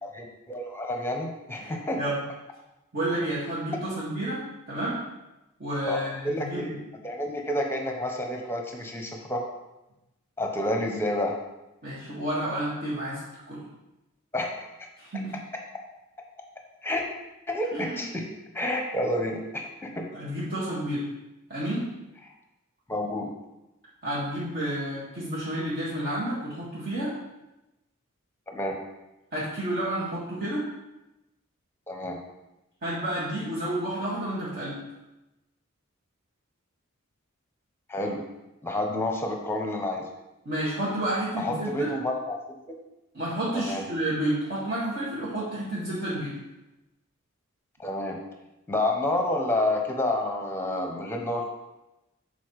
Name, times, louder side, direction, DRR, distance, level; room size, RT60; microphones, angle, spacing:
voice 1, 0.0-2.0 5.9-6.8 7.0-9.4 10.4-11.3 14.3-14.7 16.8-17.0 17.5-18.2 18.5-19.7 19.9-20.1 22.9-23.3 28.5-28.8 31.9-32.2 37.9-38.2 38.6-40.0 41.4-42.8 43.5-43.8 47.8-48.2 48.7-51.5, left 1 dB, 10° left, 2 dB, 0.9 m, -29 dB
voice 2, 2.9-5.0 5.6-6.8 11.8-13.2 13.5-13.6 15.0-15.3 17.7-18.0 20.1-21.0 21.5-21.8 24.0-27.1 29.3-30.6 32.8-34.8 40.5-41.9 43.1-46.3, right 1 dB, 45° right, -10 dB, 1.8 m, -30 dB
6.9 x 4.2 x 4.7 m, 0.98 s
head